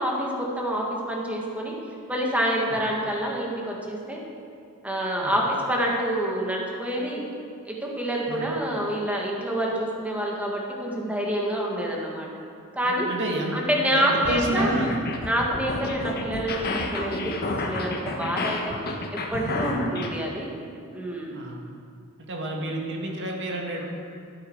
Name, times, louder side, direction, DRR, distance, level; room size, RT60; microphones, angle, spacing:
voice 1, 0.0-1.7 2.1-4.2 4.8-7.2 7.6-12.3 12.7-13.1 13.5-14.7 15.2-18.7 19.1-20.5 20.9-21.3, equal, 5° right, -2 dB, 1.8 m, -27 dB
voice 2, 12.8-13.5 13.9-15.0 19.6-19.7 21.3-21.6 22.3-23.9, right 1 dB, 55° right, 0 dB, 2.0 m, -29 dB
sound 1, 14.1-20.1, left 2 dB, 50° left, 1.2 m, -30 dB
12.5 x 11.0 x 4.7 m, 2.4 s
head